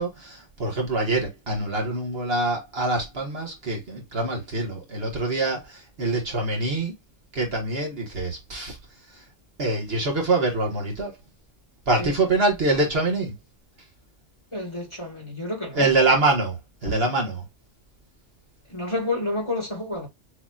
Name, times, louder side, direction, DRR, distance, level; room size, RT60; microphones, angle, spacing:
voice 1, 0.0-6.9 7.3-8.8 9.1-9.2 9.6-11.2 11.9-13.3 15.7-17.4, right 2 dB, 55° right, 1.6 m, -25 dB
voice 2, 14.5-15.9 18.7-20.1, left 2 dB, 25° left, 1.9 m, -29 dB
6.4 x 2.9 x 2.3 m
omnidirectional pair, 1.3 m